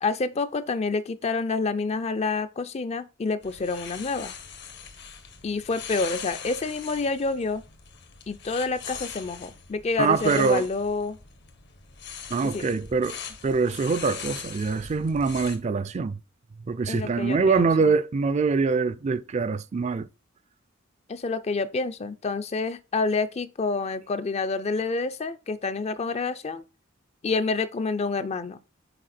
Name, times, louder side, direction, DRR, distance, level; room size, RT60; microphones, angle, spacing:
voice 1, 0.0-4.3 5.4-7.6 8.3-11.2 12.4-12.8 16.9-17.9 21.1-26.6 27.2-28.6, left 3 dB, 30° left, 0.4 m, -28 dB
sound 1, 3.4-15.6, left 7 dB, 60° left, 1.0 m, -41 dB
voice 2, 10.0-10.6 12.3-16.2 16.7-20.1, right 4 dB, 35° right, 0.4 m, -24 dB
6.6 x 4.1 x 4.2 m
head